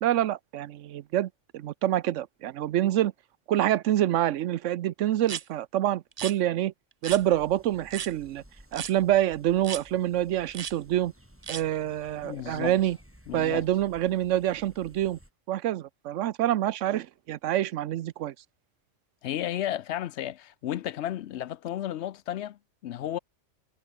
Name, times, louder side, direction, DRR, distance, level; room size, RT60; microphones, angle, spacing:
voice 1, 0.0-3.1 3.5-6.7 7.0-8.4 8.7-11.1 11.5-13.0 13.3-15.2 15.5-18.3, right 12 dB, 80° right, 1.0 m, -26 dB
sound 1, 5.2-5.4 6.1-6.3 7.0-7.2 7.9-8.1 8.7-8.9 9.6-9.8 10.5-10.7 11.4-11.6, right 8 dB, 45° right, 0.5 m, -35 dB
sound 2, 7.1-15.3, equal, 10° right, 6.1 m, -55 dB
voice 2, 12.2-12.8 13.3-13.7 19.2-23.2, left 12 dB, 70° left, 0.8 m, -33 dB
omnidirectional pair, 1.3 m